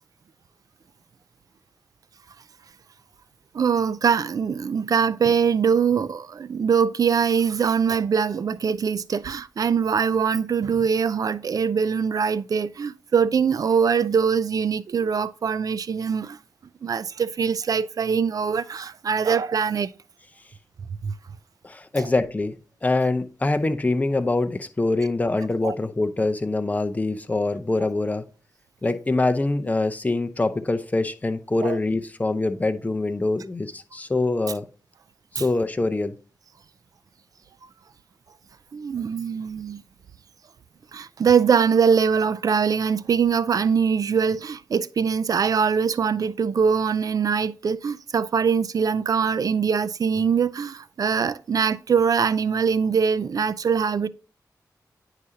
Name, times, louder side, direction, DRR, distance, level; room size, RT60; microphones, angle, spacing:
voice 1, 3.5-16.4 16.8-19.9 21.0-21.1 22.0-22.1 25.6-25.7 31.6-31.8 35.4-35.5 38.7-39.8 40.9-54.1, right 6 dB, 60° right, 0.4 m, -22 dB
voice 2, 21.6-22.6 22.8-28.2 28.8-34.6 35.4-36.1, left 2 dB, 20° left, 0.7 m, -24 dB
9.3 x 4.9 x 2.8 m
wide cardioid pair, 95°, 7 cm